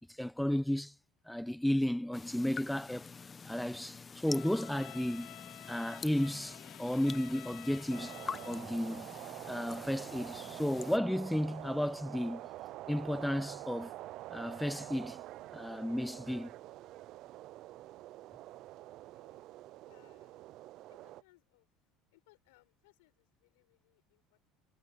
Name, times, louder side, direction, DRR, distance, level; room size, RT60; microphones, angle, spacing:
voice 1, 0.1-0.9 1.3-3.1 3.4-5.3 5.7-8.2 8.4-9.1 9.5-12.4 12.9-14.0 14.3-15.2 15.5-16.5, left 1 dB, 5° left, 0.8 m, -33 dB
sound 1, 2.1-11.0, left 5 dB, 25° left, 1.1 m, -47 dB
Bowed string instrument, 4.2-8.8, left 19 dB, 70° left, 6.3 m, -51 dB
sound 2, 7.9-21.2, right 16 dB, 60° right, 0.6 m, -47 dB
voice 2, 18.9-19.4 19.9-20.5 20.9-21.7 22.1-24.5, left 23 dB, 90° left, 7.2 m, -68 dB
supercardioid pair, 105°, 0 cm